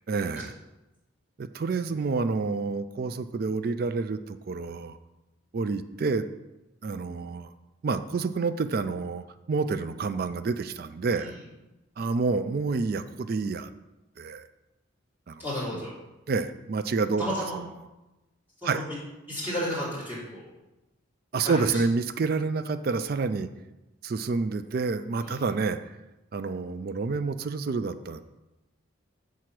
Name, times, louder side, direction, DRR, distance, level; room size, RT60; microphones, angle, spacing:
voice 1, 0.1-0.5 1.4-5.0 5.5-6.3 6.8-7.5 7.8-11.3 12.0-13.7 14.2-14.4 15.3-15.4 15.7-15.9 16.3-17.2 17.5-17.7 18.6-18.8 21.3-23.5 24.0-25.8 26.3-28.2, right 4 dB, 45° right, 11 dB, 0.3 m, -28 dB
voice 2, 15.4-15.9 17.2-17.5 18.6-18.8 19.3-20.4 21.4-21.5, equal, 10° right, -10 dB, 2.8 m, -32 dB
6.9 x 4.7 x 5.9 m, 1.0 s
head